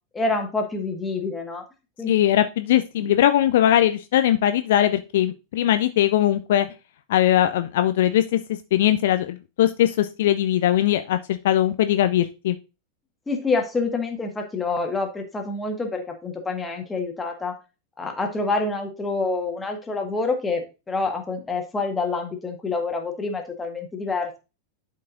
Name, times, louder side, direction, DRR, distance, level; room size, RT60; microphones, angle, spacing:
voice 1, 0.1-1.6 2.0-2.1 3.0-3.1 13.3-17.5 18.0-24.4, left 3 dB, 15° left, 3 dB, 1.6 m, -27 dB
voice 2, 2.1-6.7 7.1-12.6, left 12 dB, 55° left, 10 dB, 0.4 m, -20 dB
11.5 x 4.7 x 2.6 m, 0.29 s
figure-of-eight pair, 90°, 0 cm